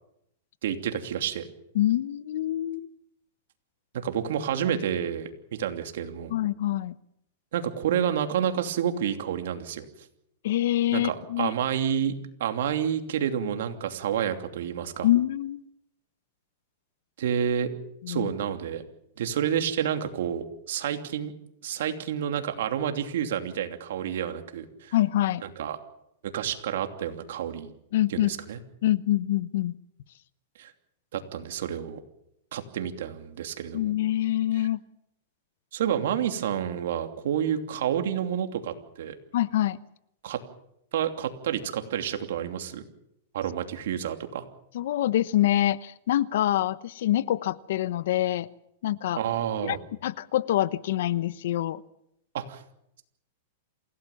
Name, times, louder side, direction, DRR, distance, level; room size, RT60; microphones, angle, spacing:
voice 1, 0.6-1.4 3.9-5.3 5.6-6.3 7.5-9.8 10.9-12.1 12.4-15.1 17.2-17.7 18.1-18.8 19.2-21.3 21.6-24.9 25.4-25.8 26.2-27.7 28.1-28.6 30.6-30.7 31.1-32.0 32.5-33.9 35.7-39.1 40.2-40.4 40.9-42.8 43.3-44.4 49.2-49.8 52.3-52.6, right 9 dB, 75° right, 6 dB, 2.9 m, -29 dB
voice 2, 1.7-2.9 6.3-6.9 10.4-11.5 15.0-15.6 18.0-18.3 24.9-25.4 27.9-28.3 28.8-29.8 33.7-34.8 39.3-39.8 44.7-48.5 48.8-49.2 49.6-49.8 50.0-51.8, left 13 dB, 70° left, 17 dB, 0.9 m, -25 dB
27.5 x 17.0 x 7.3 m, 0.78 s
supercardioid pair, 140°, 0 cm